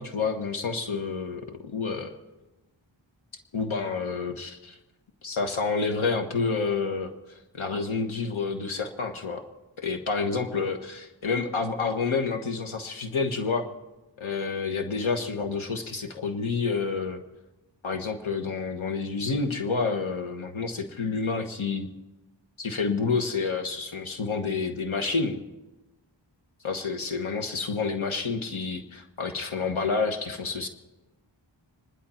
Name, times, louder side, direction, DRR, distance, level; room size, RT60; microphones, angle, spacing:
voice 1, 0.0-2.2 3.5-4.8 5.2-9.4 9.8-13.7 14.2-17.2 17.8-21.9 22.6-25.4 26.6-30.7, left 4 dB, 85° left, 5 dB, 1.3 m, -29 dB
26.5 x 11.5 x 4.4 m, 1.0 s
wide cardioid pair, 60°, 47 cm